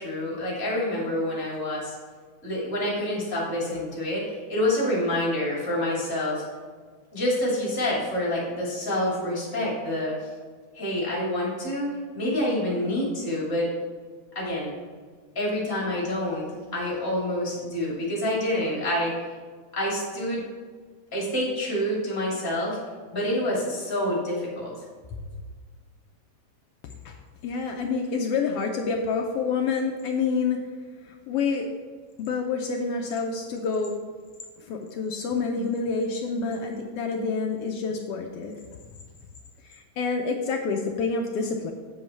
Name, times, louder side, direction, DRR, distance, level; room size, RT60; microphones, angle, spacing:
voice 1, 0.0-1.9 2.4-6.4 7.1-10.3 10.7-11.9 12.1-13.7 14.3-14.7 15.3-16.4 16.7-19.1 19.7-20.4 21.1-22.8 23.1-24.7, left 1 dB, 5° left, -5 dB, 2.6 m, -27 dB
voice 2, 27.4-30.6 31.0-31.7 32.2-34.0 34.6-38.6 39.6-41.7, left 4 dB, 75° left, 3 dB, 1.5 m, -28 dB
7.9 x 7.6 x 4.5 m, 1.5 s
omnidirectional pair, 3.3 m